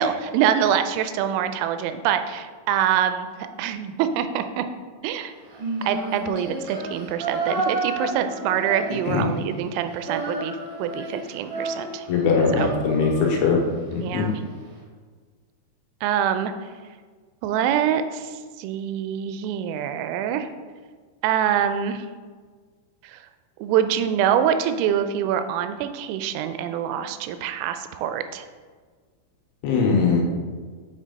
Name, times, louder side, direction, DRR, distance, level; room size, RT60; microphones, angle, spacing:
voice 1, 0.0-3.3 3.6-4.6 5.0-5.3 5.9-10.5 10.8-12.1 12.6-12.7 14.0-14.3 16.0-16.5 17.4-20.5 21.2-22.1 23.0-23.2 23.6-28.5, right 9 dB, 90° right, 9 dB, 3.2 m, -25 dB
Female singing, 5.5-9.4 9.7-13.9, right 2 dB, 65° right, 2.2 m, -31 dB
voice 2, 12.1-13.6 13.9-14.3 29.6-30.2, left 5 dB, 80° left, -2 dB, 3.5 m, -21 dB
7.4 x 5.7 x 4.0 m, 1.5 s
omnidirectional pair, 5.7 m